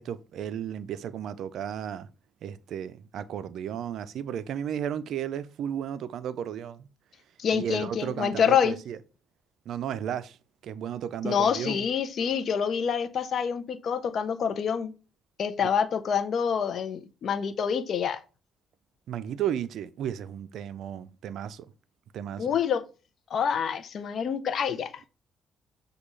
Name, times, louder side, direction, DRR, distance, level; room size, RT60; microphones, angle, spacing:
voice 1, 0.0-2.1 2.4-6.9 7.5-9.0 9.7-10.4 10.6-11.9 15.6-15.7 19.1-21.7 22.1-22.5, right 9 dB, 75° right, 0.3 m, -34 dB
voice 2, 7.4-8.8 11.2-14.9 15.4-18.2 22.4-22.8 23.3-25.0, left 7 dB, 60° left, 0.5 m, -27 dB
6.6 x 2.3 x 3.1 m
cardioid pair, 90°, 0 cm